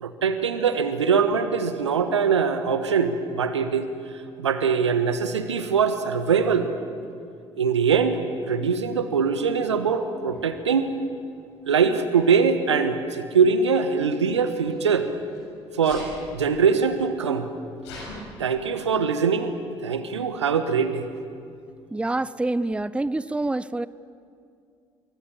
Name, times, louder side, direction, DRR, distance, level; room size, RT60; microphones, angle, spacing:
voice 1, 0.0-3.9 4.4-6.7 7.6-8.2 8.5-10.9 11.7-15.1 15.7-16.1 16.3-17.5 18.4-19.6 19.8-21.1, right 6 dB, 80° right, 10 dB, 1.4 m, -22 dB
Sneeze, 10.3-10.4 11.5-11.9 14.0-15.4 15.8-16.2 16.9-17.0 17.2-18.2, left 3 dB, 75° left, 6.9 m, -42 dB
voice 2, 21.9-23.9, right 2 dB, 10° right, 18 dB, 0.6 m, -26 dB
26.0 x 24.0 x 7.1 m, 2.4 s
figure-of-eight pair, 50°, 15 cm